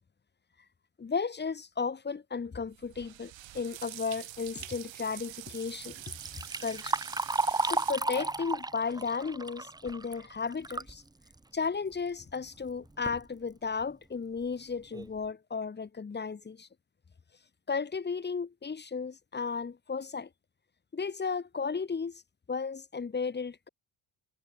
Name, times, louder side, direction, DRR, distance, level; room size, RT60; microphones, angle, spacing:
voice 1, 1.0-6.0 6.6-7.0 7.6-11.0 11.5-16.7 17.7-20.3 20.9-22.2 22.5-23.7, left 5 dB, 20° left, 1.8 m, -34 dB
sound 1, 2.5-7.9, right 13 dB, 70° right, 6.3 m, -45 dB
Liquid, 5.8-11.0 11.4-11.5 12.3-12.4 12.9-13.2 13.8-13.9 14.4-14.5 14.9-15.2, right 2 dB, 10° right, 1.0 m, -33 dB
cardioid pair, 155°, 47 cm